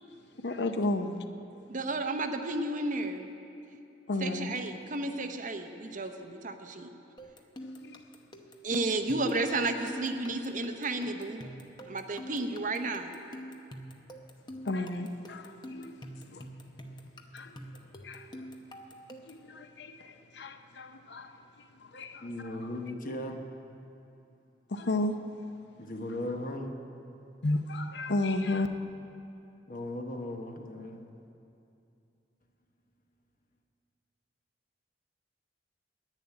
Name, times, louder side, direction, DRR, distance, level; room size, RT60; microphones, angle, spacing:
voice 1, 0.3-1.2 4.1-4.5 7.6-8.0 14.6-16.1 16.3-16.5 17.3-18.5 19.3-22.8 24.7-25.2 27.4-28.7, left 2 dB, 70° left, 0.7 m, -33 dB
voice 2, 1.7-3.3 4.2-6.9 8.6-11.4 11.9-13.1, right 2 dB, 45° right, 0.8 m, -32 dB
sound 1, 7.2-19.5, equal, 25° left, 0.8 m, -46 dB
voice 3, 22.2-23.4 25.8-26.8 29.7-31.1, left 1 dB, 50° left, 1.2 m, -37 dB
10.5 x 9.1 x 9.7 m
head